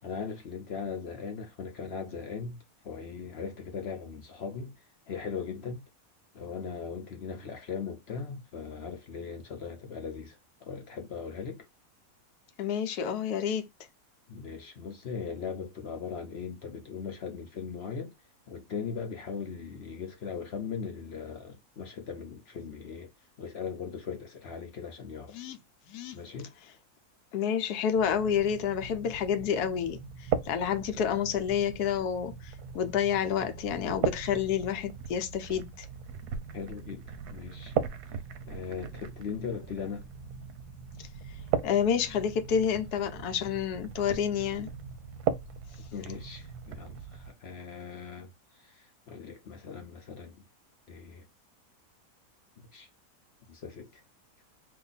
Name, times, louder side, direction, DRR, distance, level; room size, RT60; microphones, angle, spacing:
voice 1, 0.0-2.6 2.8-4.7 5.1-5.8 6.3-11.7 14.3-18.1 18.5-23.1 23.4-25.4 26.1-26.5 36.5-37.7 38.4-40.1 45.9-48.3 48.6-50.4 50.9-51.2 52.7-52.9 53.5-54.0, left 6 dB, 55° left, 0.8 m, -39 dB
voice 2, 12.6-13.7 25.3-25.6 25.9-26.2 27.3-30.0 30.4-35.9 41.6-44.7, left 8 dB, 85° left, 1.2 m, -29 dB
sound 1, 27.9-47.3, right 7 dB, 90° right, 1.1 m, -38 dB
2.9 x 2.6 x 3.8 m
omnidirectional pair, 1.6 m